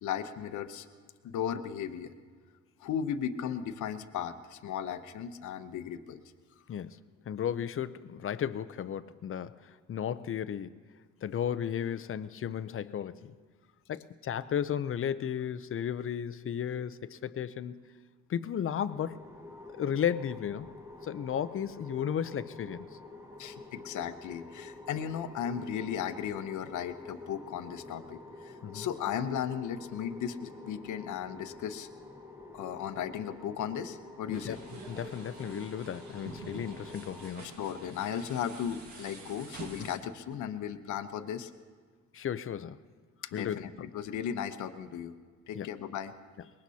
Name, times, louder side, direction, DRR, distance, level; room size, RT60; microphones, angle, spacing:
voice 1, 0.0-0.9 1.2-2.1 2.8-6.2 23.4-31.9 32.5-34.6 37.4-41.5 43.3-45.1 45.5-46.1, left 8 dB, 75° left, 9 dB, 0.9 m, -36 dB
voice 2, 7.3-10.8 11.2-13.3 13.9-17.9 18.3-19.2 19.8-20.7 21.0-22.9 28.6-28.9 34.3-34.6 34.9-37.6 42.1-42.8 43.3-43.9 45.5-45.7, left 9 dB, 45° left, 14 dB, 0.6 m, -34 dB
sound 1, 18.9-37.3, left 2 dB, 10° right, 1.8 m, -48 dB
sound 2, 34.3-40.0, right 3 dB, 65° right, 2.0 m, -47 dB
23.0 x 20.0 x 2.8 m, 1.5 s
cardioid pair, 90°, 30 cm